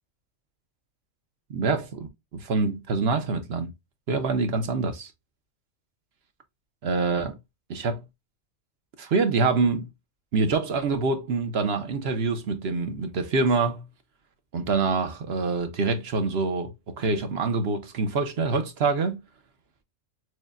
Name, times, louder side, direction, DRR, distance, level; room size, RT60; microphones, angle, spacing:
voice 1, 1.5-3.7 4.1-5.1 6.8-7.4 7.7-8.0 9.0-9.9 10.3-13.8 14.5-19.2, right 4 dB, 55° right, 0.9 m, -25 dB
6.2 x 2.2 x 2.4 m
omnidirectional pair, 1.4 m